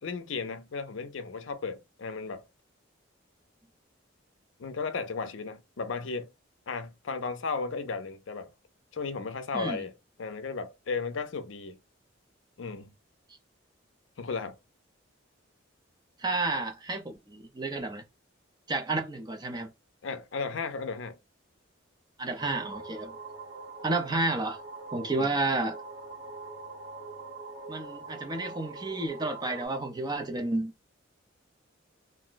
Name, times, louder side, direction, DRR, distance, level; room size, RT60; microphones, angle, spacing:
voice 1, 0.0-2.4 4.6-6.3 6.7-8.5 8.9-9.9 10.2-11.8 12.6-12.9 14.2-14.6 20.0-21.2 25.1-25.3, left 4 dB, 70° left, 0.5 m, -35 dB
voice 2, 16.2-18.0 18.7-19.7 22.2-23.1 23.8-24.6 24.9-25.8 27.7-30.7, right 2 dB, 20° right, 0.5 m, -31 dB
sound 1, 22.4-29.7, right 3 dB, 80° right, 1.3 m, -43 dB
2.6 x 2.1 x 3.8 m
head